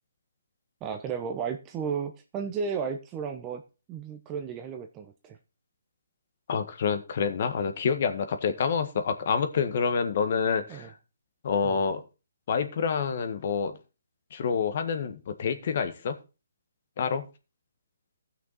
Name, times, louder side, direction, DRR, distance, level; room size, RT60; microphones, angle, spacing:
voice 1, 0.8-3.6 3.9-5.4 10.7-10.9 11.6-11.8, right 6 dB, 20° right, 5 dB, 0.9 m, -34 dB
voice 2, 6.5-10.9 11.4-12.0 12.5-13.7 14.3-16.2 17.0-17.2, left 6 dB, 50° left, 8 dB, 1.6 m, -27 dB
14.5 x 6.2 x 4.2 m, 0.30 s
hypercardioid pair, 150°, 0 cm